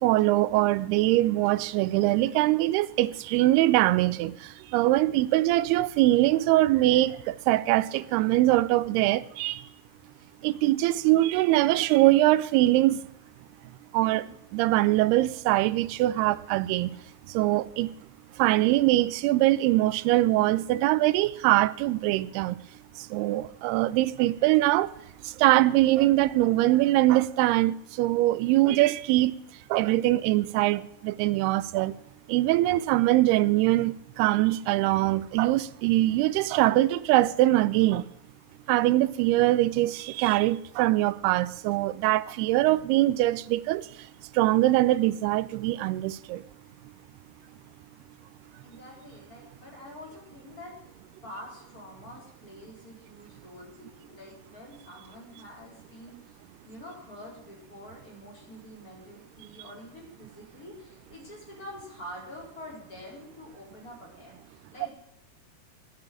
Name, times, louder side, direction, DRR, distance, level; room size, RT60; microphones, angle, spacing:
voice 1, 0.0-9.7 10.4-13.0 13.9-17.0 17.3-17.9 18.4-22.6 23.0-24.9 25.2-29.4 29.7-32.0 32.3-38.1 38.7-44.1 44.3-46.4, right 16 dB, 80° right, 2.5 m, -23 dB
voice 2, 48.6-50.8 51.2-56.3 56.6-64.9, left 1 dB, 20° left, 4.4 m, -46 dB
10.5 x 8.9 x 8.4 m
omnidirectional pair, 4.7 m